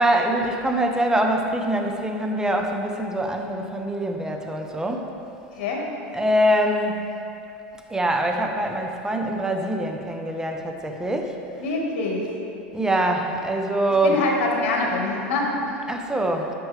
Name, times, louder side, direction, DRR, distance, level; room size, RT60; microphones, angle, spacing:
voice 1, 0.0-5.1 6.1-7.1 7.9-11.4 12.7-14.2 15.9-16.5, right 1 dB, 10° right, 3 dB, 0.8 m, -24 dB
voice 2, 11.6-12.3 14.0-15.9, left 3 dB, 70° left, -1 dB, 1.6 m, -25 dB
10.0 x 6.1 x 3.3 m, 2.8 s
hypercardioid pair, 100°, 7 cm